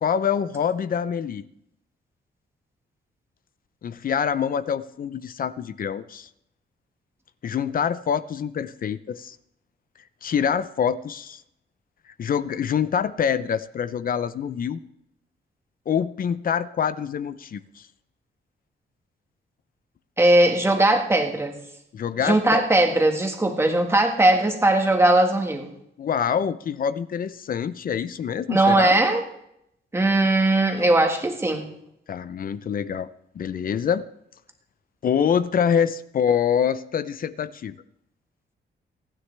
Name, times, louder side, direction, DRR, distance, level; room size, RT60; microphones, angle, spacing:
voice 1, 0.0-1.4 3.8-6.3 7.4-9.4 10.2-11.4 12.2-14.8 15.9-17.9 21.9-22.6 26.0-29.0 32.1-33.1 33.3-34.1 35.0-37.7, left 8 dB, 45° left, 15 dB, 0.5 m, -25 dB
voice 2, 20.2-21.5 22.2-25.7 28.5-29.2 29.9-31.7, right 1 dB, 10° right, 3 dB, 1.6 m, -19 dB
27.0 x 9.8 x 3.3 m, 0.78 s
wide cardioid pair, 160°, 20 cm